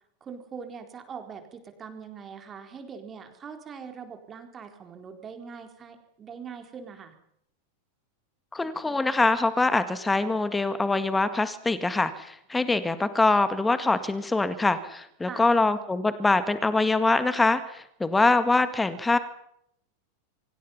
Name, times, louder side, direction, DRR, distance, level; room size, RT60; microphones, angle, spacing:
voice 1, 0.2-7.1 15.3-15.5, right 6 dB, 25° right, 6 dB, 4.1 m, -42 dB
voice 2, 8.5-19.2, left 3 dB, 10° left, 12 dB, 1.9 m, -24 dB
29.0 x 24.5 x 5.7 m, 0.74 s
figure-of-eight pair, 90°, 0 cm